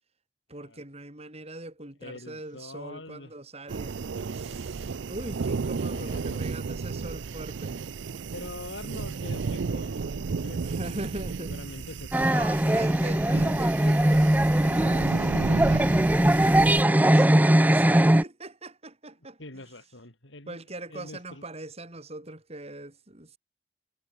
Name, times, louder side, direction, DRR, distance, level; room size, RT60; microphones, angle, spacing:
voice 1, 0.5-4.0 4.3-7.8 10.6-11.9 12.3-19.4 20.5-23.4, right 1 dB, 35° right, 4.7 m, -41 dB
voice 2, 2.0-3.3 5.7-6.6 8.3-10.8 11.4-13.7 19.4-20.6 20.9-21.4, left 2 dB, 90° left, 5.3 m, -44 dB
sound 1, 3.7-16.8, right 4 dB, 80° right, 0.5 m, -33 dB
sound 2, 12.1-18.2, right 1 dB, 10° right, 0.6 m, -21 dB
head